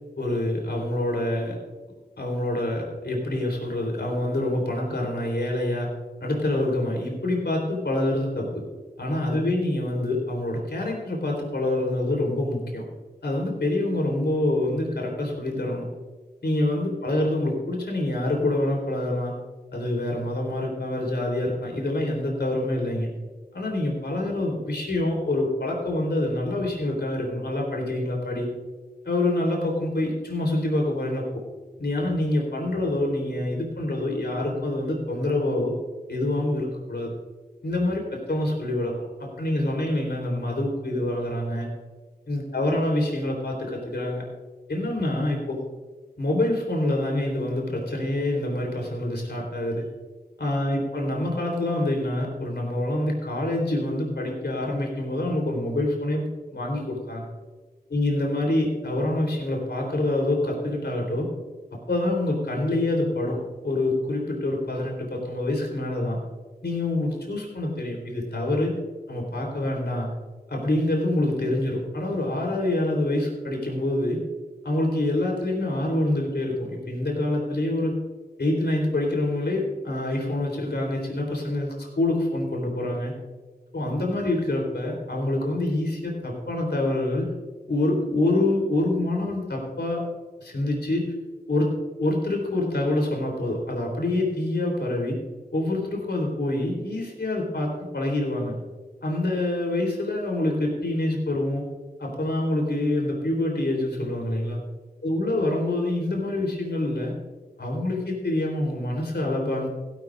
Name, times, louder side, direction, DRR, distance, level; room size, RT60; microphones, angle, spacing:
voice 1, 0.2-1.6 2.2-5.9 6.2-8.6 9.0-12.8 13.2-15.9 16.4-19.3 19.7-23.1 23.5-28.5 29.0-31.4 31.8-35.7 36.1-37.1 37.6-41.7 42.3-44.2 44.7-45.6 46.2-49.9 50.4-57.3 57.9-61.3 61.9-66.2 66.6-68.8 69.1-70.1 70.5-74.2 74.6-77.9 78.4-83.1 83.7-87.3 87.7-90.0 90.4-91.1 91.5-91.7 92.0-95.2 95.5-98.6 99.0-101.6 102.0-104.6 105.0-107.1 107.6-109.7, left 1 dB, 80° left, 0 dB, 3.8 m, -26 dB
17.0 x 12.0 x 2.6 m, 1.3 s
wide cardioid pair, 70°, 17 cm